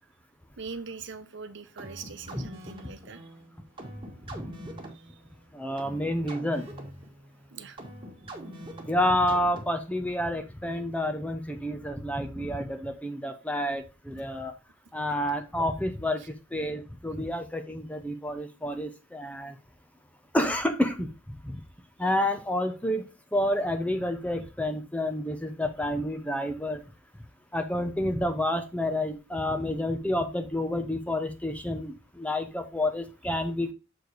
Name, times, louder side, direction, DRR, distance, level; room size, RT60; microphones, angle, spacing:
voice 1, 0.6-3.3 4.9-5.2 7.5-7.8 16.2-16.3, right 5 dB, 65° right, 9 dB, 0.9 m, -42 dB
sound 1, 1.8-10.0, right 1 dB, 25° right, 1.8 m, -44 dB
voice 2, 5.5-6.7 8.9-14.5 14.9-16.2 16.5-19.6 20.3-21.1 21.4-21.6 22.0-26.8 27.5-33.7, left 1 dB, 5° left, 8 dB, 0.8 m, -29 dB
6.8 x 4.5 x 4.6 m, 0.28 s
head